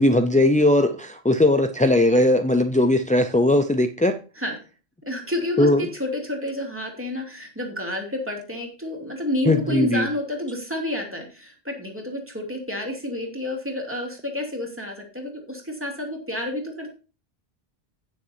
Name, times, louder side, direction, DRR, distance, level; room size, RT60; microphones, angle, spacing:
voice 1, 0.0-4.2 5.6-5.8 9.5-10.1, left 1 dB, 10° left, 6 dB, 0.4 m, -19 dB
voice 2, 5.1-16.9, left 1 dB, 10° right, 1 dB, 2.9 m, -30 dB
16.5 x 6.9 x 2.7 m, 0.34 s
omnidirectional pair, 1.1 m